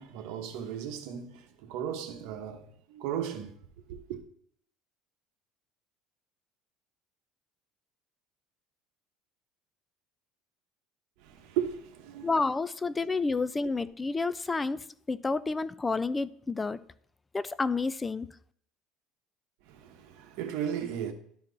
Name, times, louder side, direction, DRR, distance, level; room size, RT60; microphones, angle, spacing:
voice 1, 0.0-3.5 3.9-4.2 11.2-12.3 19.7-21.1, right 9 dB, 75° right, 1.1 m, -36 dB
voice 2, 12.2-16.8 17.3-18.3, left 3 dB, 15° left, 0.3 m, -30 dB
11.5 x 4.4 x 4.0 m
cardioid pair, 135°, 0 cm